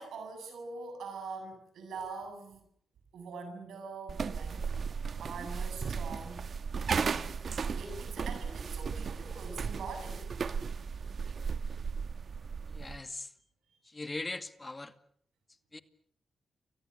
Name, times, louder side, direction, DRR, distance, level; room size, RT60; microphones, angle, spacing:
voice 1, 0.0-2.6 3.1-4.7 5.2-6.5 6.9-7.3 7.8-10.3, right 4 dB, 85° right, 6 dB, 7.8 m, -43 dB
sound 1, 4.1-13.0, right 5 dB, 60° right, 1.5 m, -35 dB
voice 2, 12.7-13.3 13.8-15.0 15.7-15.8, left 2 dB, 25° left, 10 dB, 2.2 m, -40 dB
30.0 x 23.5 x 6.8 m, 0.65 s
supercardioid pair, 55°, 0 cm